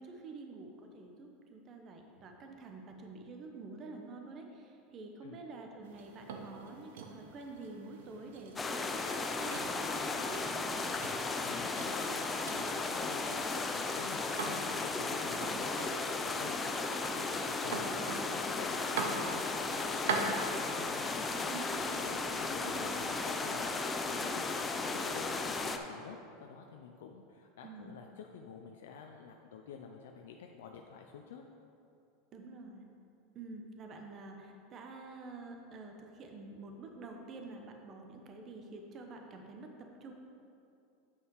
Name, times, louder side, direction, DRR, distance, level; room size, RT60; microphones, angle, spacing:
voice 1, 0.0-10.9 13.2-13.3 21.4-22.1 22.6-23.4 27.6-28.0 32.3-32.8 33.3-40.1, right 3 dB, 35° right, 3 dB, 0.8 m, -48 dB
sound 1, 5.8-20.5, right 4 dB, 90° right, 0.8 m, -43 dB
sound 2, 8.6-25.8, left 3 dB, 15° left, 0.5 m, -35 dB
voice 2, 11.4-12.3 12.5-21.6 21.9-24.4 24.7-31.5, left 6 dB, 90° left, 3 dB, 0.5 m, -49 dB
8.4 x 5.6 x 4.7 m, 2.6 s
supercardioid pair, 135°, 0 cm